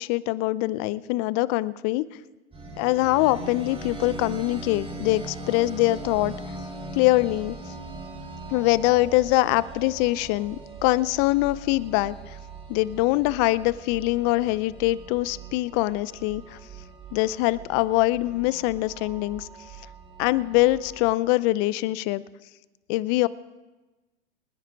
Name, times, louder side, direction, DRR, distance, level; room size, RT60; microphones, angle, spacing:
voice 1, 0.0-2.0 2.8-6.3 6.9-7.6 8.5-12.4 12.7-16.6 17.1-19.5 20.2-22.2 22.9-23.3, left 18 dB, 35° left, 19 dB, 0.6 m, -23 dB
sound 1, 2.5-21.1, right 3 dB, 15° right, 4.3 m, -40 dB
26.5 x 10.0 x 5.0 m, 1.1 s
hypercardioid pair, 110°, 36 cm